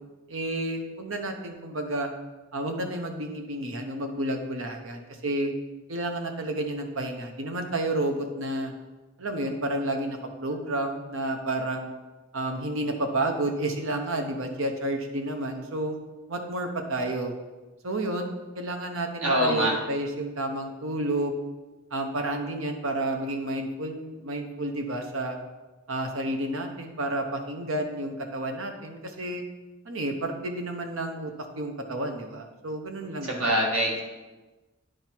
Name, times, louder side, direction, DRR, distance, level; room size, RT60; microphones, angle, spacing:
voice 1, 0.3-2.1 2.5-5.5 5.9-8.7 9.2-11.9 12.3-15.9 16.3-17.3 17.8-18.3 18.5-21.4 21.9-25.4 25.9-29.4 29.8-33.5, right 1 dB, 70° right, 4 dB, 1.0 m, -30 dB
voice 2, 19.2-19.7 33.2-34.0, equal, 90° right, -2 dB, 1.9 m, -24 dB
10.0 x 4.7 x 4.5 m, 1.2 s
head